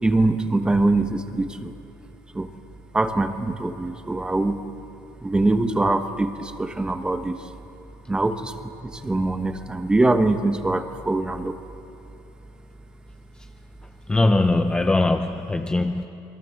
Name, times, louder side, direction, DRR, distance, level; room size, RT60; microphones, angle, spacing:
voice 1, 0.0-1.7 2.3-2.5 2.9-4.6 5.2-7.4 8.1-11.6 15.6-15.7, right 2 dB, 10° right, 8 dB, 1.1 m, -23 dB
voice 2, 14.1-16.1, left 2 dB, 10° left, 5 dB, 0.7 m, -21 dB
28.5 x 22.0 x 7.7 m, 2.9 s
cardioid pair, 165°, 10 cm